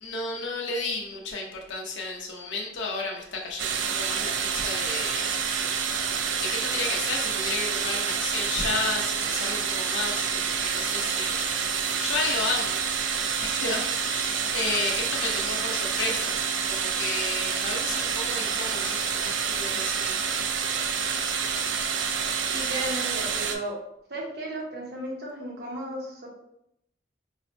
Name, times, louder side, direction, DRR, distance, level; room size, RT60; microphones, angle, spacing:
voice 1, 0.0-5.4 6.4-11.5 12.0-12.8 13.4-16.4 16.7-20.4, left 3 dB, 75° left, 0 dB, 0.6 m, -33 dB
sound 1, 3.6-23.5, right 6 dB, 75° right, 0.3 m, -28 dB
voice 2, 22.5-23.8 24.1-26.3, right 1 dB, 55° right, -2 dB, 0.8 m, -34 dB
4.0 x 2.1 x 2.5 m, 0.79 s
head